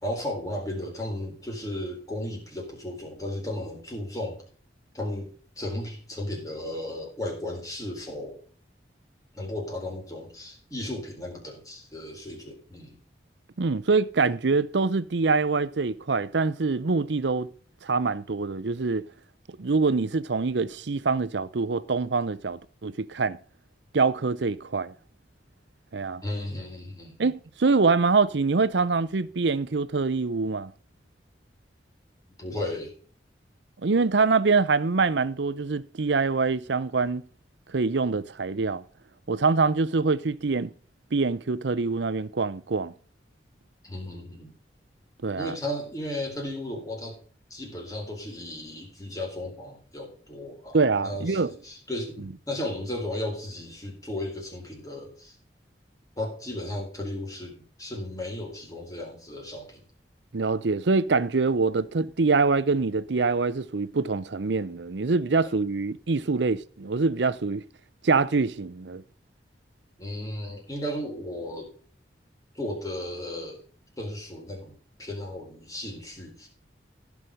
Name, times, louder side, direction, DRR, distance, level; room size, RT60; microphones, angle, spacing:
voice 1, 0.0-4.4 4.9-8.4 9.3-13.0 26.2-27.2 32.4-32.9 43.8-44.6 45.4-47.2 47.5-55.4 56.2-59.8 70.0-71.7 72.5-73.6 74.0-76.5, left 1 dB, 20° left, 3.9 m, -35 dB
voice 2, 13.6-17.5 17.8-19.1 19.6-23.4 23.9-24.9 25.9-26.2 27.2-30.7 33.8-37.3 37.7-38.8 39.3-40.7 41.1-42.9 45.2-45.6 50.7-51.5 60.3-67.6 68.0-69.0, right 4 dB, 80° right, 0.7 m, -24 dB
15.5 x 6.1 x 5.0 m
head